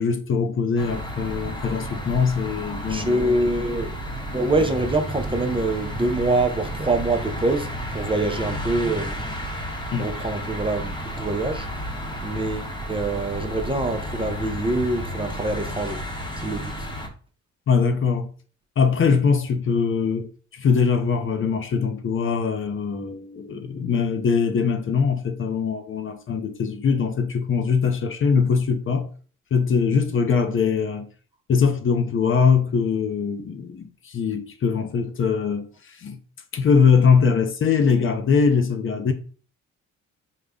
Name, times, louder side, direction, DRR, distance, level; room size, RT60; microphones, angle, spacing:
voice 1, 0.0-3.2 9.9-10.1 17.7-18.3 18.8-29.1 29.5-31.1 31.5-36.2 36.5-39.1, left 5 dB, 45° left, 0.6 m, -22 dB
sound 1, 0.8-17.1, equal, 15° left, 0.9 m, -32 dB
voice 2, 2.9-3.9 4.3-9.3 9.9-11.7 12.2-16.0 16.4-16.9, right 2 dB, 15° right, 0.5 m, -25 dB
3.8 x 2.1 x 3.5 m
cardioid pair, 90°, 30 cm